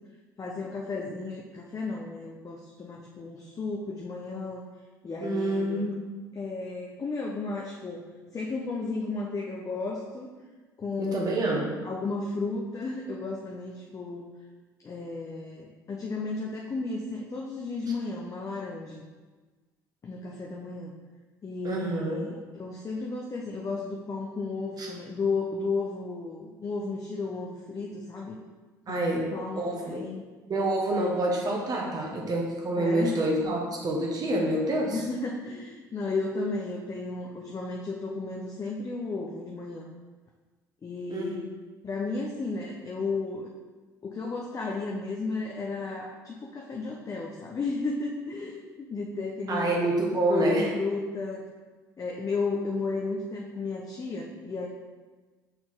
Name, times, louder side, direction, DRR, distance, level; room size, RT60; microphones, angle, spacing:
voice 1, 0.4-4.6 5.0-5.9 6.3-10.3 10.8-11.3 11.8-14.3 14.8-19.0 20.0-20.9 21.4-28.4 28.9-30.2 32.1-32.4 32.8-33.2 34.9-39.9 40.8-41.4 41.8-43.5 44.0-49.8 50.3-51.5 52.0-54.7, left 3 dB, 35° left, -1 dB, 0.8 m, -33 dB
voice 2, 5.2-5.9 11.0-11.7 21.6-22.2 24.8-24.9 28.9-29.3 29.6-30.0 30.5-35.0 41.1-41.3 49.5-50.7, right 1 dB, 45° right, -1 dB, 1.3 m, -27 dB
5.8 x 4.5 x 3.7 m, 1.3 s
hypercardioid pair, 55°, 9 cm